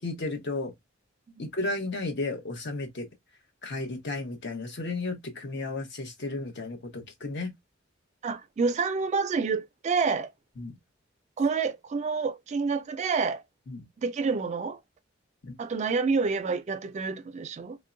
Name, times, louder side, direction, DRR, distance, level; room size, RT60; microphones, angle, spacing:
voice 1, 0.0-0.7 1.4-3.1 3.6-7.5 10.6-10.7 13.7-13.9 15.4-15.5, left 2 dB, 60° left, 0.9 m, -33 dB
voice 2, 8.2-10.3 11.4-13.4 14.0-14.8 15.6-17.8, right 4 dB, 35° right, 0.3 m, -28 dB
3.5 x 2.1 x 2.5 m
head